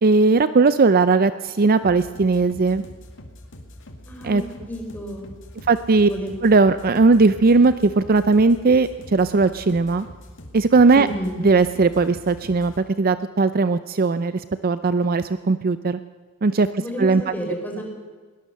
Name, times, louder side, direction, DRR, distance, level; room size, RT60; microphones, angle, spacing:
voice 1, 0.0-2.8 4.2-4.4 5.7-6.1 6.4-10.0 10.5-11.1 11.4-16.0 16.4-17.2, right 3 dB, 40° right, 13 dB, 0.5 m, -18 dB
sound 1, 1.8-12.8, left 1 dB, 60° left, 2.3 m, -43 dB
voice 2, 4.1-4.4 4.7-5.3 6.0-6.3 11.0-11.4 16.8-17.8, equal, 10° left, 1 dB, 4.6 m, -31 dB
21.5 x 19.0 x 6.7 m, 1.4 s
head